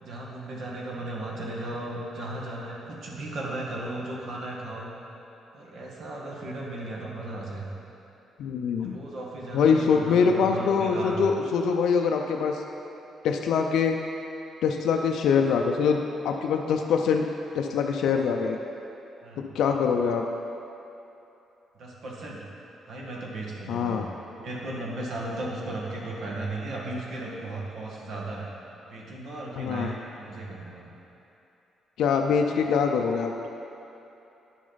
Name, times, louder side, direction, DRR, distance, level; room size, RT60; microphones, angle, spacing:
voice 1, 0.0-4.9 5.5-7.7 8.8-11.2 19.2-19.5 21.7-22.4 22.9-24.0 24.4-28.5 28.8-30.9, right 2 dB, 65° right, -3 dB, 1.6 m, -36 dB
voice 2, 8.4-9.0 9.5-12.6 13.2-14.0 14.6-16.0 16.2-17.3 17.5-18.6 19.5-20.3 23.7-24.1 29.6-29.9 32.0-33.5, left 6 dB, 80° left, 3 dB, 0.4 m, -24 dB
9.4 x 6.3 x 4.0 m, 2.9 s
cardioid pair, 90°, 0 cm